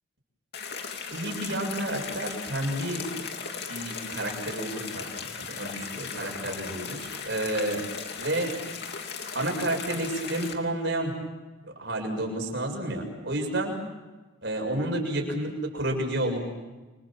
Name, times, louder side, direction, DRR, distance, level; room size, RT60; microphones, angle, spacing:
sound 1, 0.5-10.5, left 5 dB, 55° left, 2.9 m, -37 dB
voice 1, 1.1-3.1 3.7-5.0 5.4-7.8 8.2-8.6 9.3-11.1 11.8-13.7 14.4-16.4, right 1 dB, 60° right, 2 dB, 6.9 m, -30 dB
29.5 x 25.5 x 7.4 m, 1.2 s
head